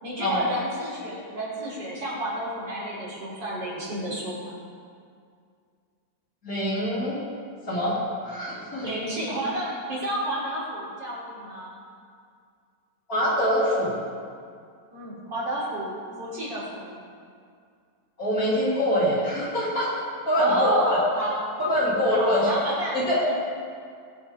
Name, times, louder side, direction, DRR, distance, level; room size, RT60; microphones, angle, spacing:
voice 1, 0.0-4.5 8.8-11.8 14.9-17.0 20.4-21.5 22.1-23.0, right 1 dB, 85° right, -7 dB, 4.2 m, -30 dB
voice 2, 6.4-7.2 7.7-8.8 13.1-14.0 18.2-19.9 20.3-21.0 21.6-22.5 22.9-23.2, equal, 50° left, -8 dB, 3.8 m, -24 dB
20.0 x 7.4 x 3.7 m, 2.2 s
omnidirectional pair, 1.9 m